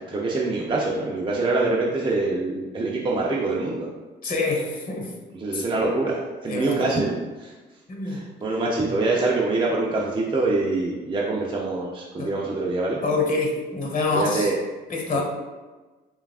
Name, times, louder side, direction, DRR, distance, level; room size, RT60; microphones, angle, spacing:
voice 1, 0.1-3.9 5.4-6.2 6.4-7.1 7.4-7.5 8.1-13.0 14.1-14.5 15.1-15.2, right 2 dB, 25° right, -3 dB, 0.6 m, -25 dB
voice 2, 4.2-5.1 5.5-5.6 6.5-7.0 7.9-8.2 12.2-12.3 13.0-14.5 14.9-15.2, left 3 dB, 40° left, 0 dB, 1.2 m, -26 dB
6.8 x 2.4 x 2.4 m, 1.2 s
cardioid pair, 90°, 20 cm